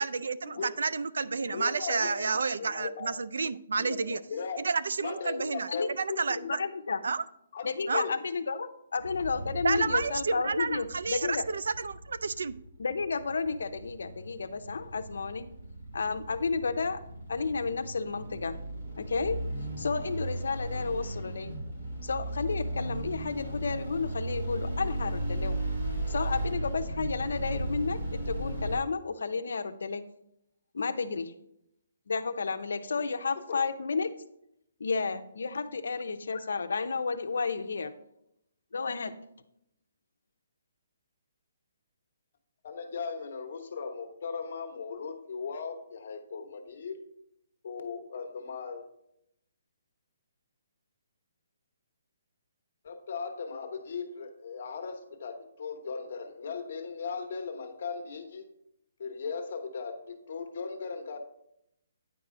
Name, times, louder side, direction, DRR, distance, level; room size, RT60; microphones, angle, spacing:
voice 1, 0.0-4.2 4.6-5.7 6.0-6.4 7.0-7.2 7.9-8.0 9.6-12.6, right 4 dB, 80° right, 17 dB, 0.4 m, -30 dB
voice 2, 1.5-2.3 2.7-3.1 3.8-4.6 5.0-6.5 7.5-8.1 33.5-33.6 42.6-47.0 47.6-48.8 52.8-58.4 59.0-61.2, left 5 dB, 50° left, 5 dB, 1.1 m, -37 dB
voice 3, 6.4-7.0 7.6-11.5 12.8-15.5 15.9-17.0 17.3-18.6 19.0-19.4 19.8-21.6 22.0-25.6 26.1-30.0 30.7-31.3 32.1-34.1 34.8-37.9 38.7-39.1, left 4 dB, 80° left, 9 dB, 0.6 m, -32 dB
sound 1, 9.0-28.8, right 1 dB, 45° right, 3.0 m, -36 dB
9.3 x 4.8 x 3.7 m, 0.78 s
hypercardioid pair, 170°, 0 cm